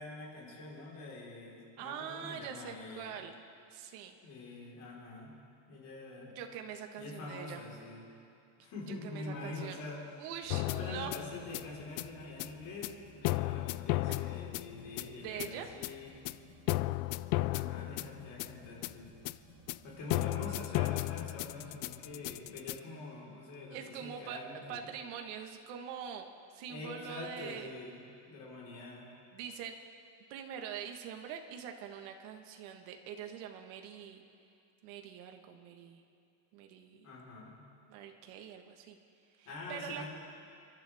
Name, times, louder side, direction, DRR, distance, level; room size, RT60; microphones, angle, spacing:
voice 1, 0.0-3.1 4.2-5.3 5.7-6.3 7.0-8.1 8.6-10.1 10.6-16.2 17.5-19.1 19.8-24.9 26.7-28.0 28.3-29.1 37.0-37.6 39.4-40.1, left 2 dB, 45° left, -4 dB, 4.4 m, -45 dB
voice 2, 1.8-3.3 3.7-4.2 6.3-7.6 8.9-9.8 10.2-11.1 14.1-14.4 15.2-15.8 23.7-24.4 24.7-26.2 26.5-27.7 29.3-29.8 30.3-34.2 34.8-36.0 36.5-37.1 37.9-39.0 39.4-40.0, right 8 dB, 80° right, 4 dB, 1.6 m, -44 dB
sound 1, 10.4-20.2, right 3 dB, 40° right, 1.2 m, -60 dB
sound 2, 10.5-22.8, left 18 dB, 90° left, 0.5 m, -35 dB
29.0 x 12.0 x 3.6 m, 2.5 s
cardioid pair, 175°, 44 cm